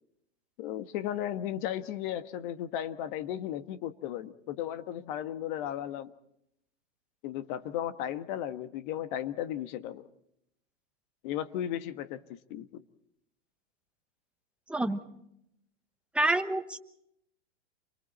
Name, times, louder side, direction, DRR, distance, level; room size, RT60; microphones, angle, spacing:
voice 1, 0.6-6.1 7.2-10.0 11.2-12.8, left 11 dB, 45° left, 12 dB, 1.5 m, -35 dB
voice 2, 14.7-15.0 16.1-16.8, right 2 dB, 5° right, 7 dB, 1.1 m, -27 dB
29.5 x 24.0 x 4.3 m, 0.78 s
hypercardioid pair, 145°, 35 cm